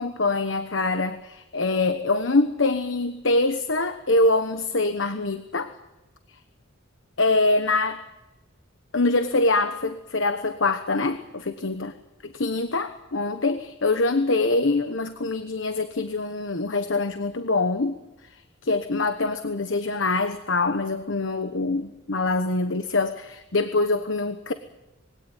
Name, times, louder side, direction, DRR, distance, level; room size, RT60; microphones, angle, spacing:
voice 1, 0.0-5.7 7.2-8.0 8.9-11.9 12.3-18.0 18.6-24.5, left 2 dB, 75° left, 9 dB, 1.1 m, -24 dB
22.0 x 17.0 x 9.4 m, 1.0 s
head